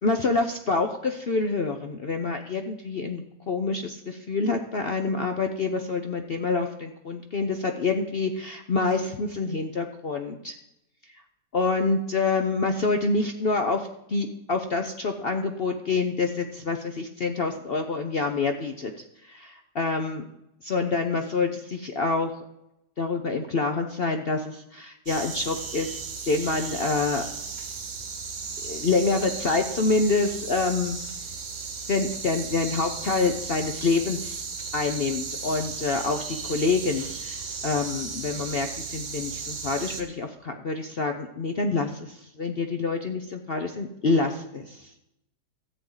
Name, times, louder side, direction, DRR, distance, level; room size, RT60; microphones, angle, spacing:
voice 1, 0.0-10.5 11.5-18.9 19.2-20.3 20.6-22.3 23.0-26.0 26.3-27.2 28.6-31.0 31.9-34.4 34.7-37.4 37.6-44.9, left 3 dB, 50° left, 5 dB, 0.7 m, -27 dB
sound 1, 25.1-40.0, right 5 dB, 60° right, 1.7 m, -35 dB
13.5 x 8.7 x 3.9 m, 0.82 s
omnidirectional pair, 1.8 m